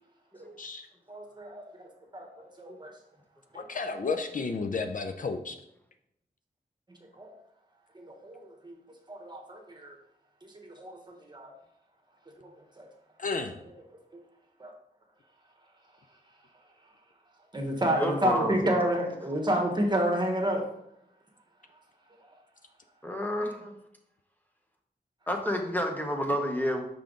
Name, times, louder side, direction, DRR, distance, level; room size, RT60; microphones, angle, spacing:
voice 1, 1.1-1.9 2.1-2.9 3.5-3.6 6.9-7.3 7.9-8.8 9.1-9.9 10.4-11.5 12.4-12.5 12.8-12.9 14.1-14.2 14.6-14.7 17.5-20.6, right 1 dB, 25° right, 1 dB, 1.3 m, -30 dB
voice 2, 3.5-5.6 13.2-13.6, left 4 dB, 55° left, 6 dB, 0.5 m, -32 dB
voice 3, 18.0-18.8 23.0-23.7 25.3-26.8, equal, 10° left, 3 dB, 1.0 m, -29 dB
5.6 x 5.0 x 3.9 m, 0.81 s
wide cardioid pair, 95°, 17 cm